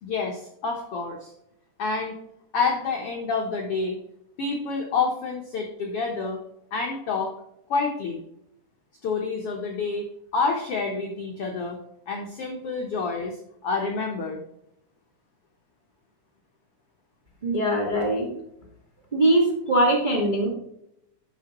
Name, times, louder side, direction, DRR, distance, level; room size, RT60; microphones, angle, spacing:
voice 1, 0.0-1.3 1.8-2.1 2.5-4.0 4.4-6.4 6.7-7.3 7.7-8.2 9.0-10.1 10.3-11.8 12.1-14.4, left 4 dB, 80° left, 0 dB, 1.3 m, -28 dB
voice 2, 17.4-18.3 19.1-20.5, right 1 dB, 30° right, -1 dB, 0.9 m, -21 dB
12.0 x 5.2 x 3.0 m, 0.79 s
omnidirectional pair, 4.2 m